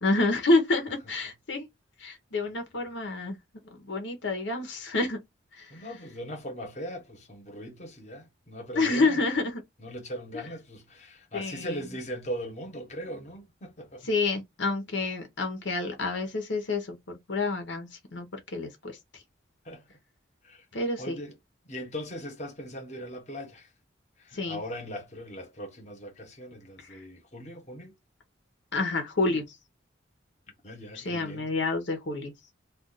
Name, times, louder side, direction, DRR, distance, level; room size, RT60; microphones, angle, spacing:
voice 1, 0.0-1.7 2.0-3.4 3.7-5.2 5.5-5.8 8.7-9.6 11.3-11.8 14.0-19.0 20.7-21.2 24.3-24.6 26.9-27.0 28.7-29.6 30.9-32.3, left 3 dB, 70° left, 0.9 m, -28 dB
voice 2, 5.7-9.2 9.8-14.1 19.6-20.0 20.4-20.7 21.0-21.3 21.6-23.7 24.2-27.9 29.3-29.4 30.6-31.6, equal, 35° left, 1.0 m, -40 dB
2.4 x 2.4 x 3.9 m
head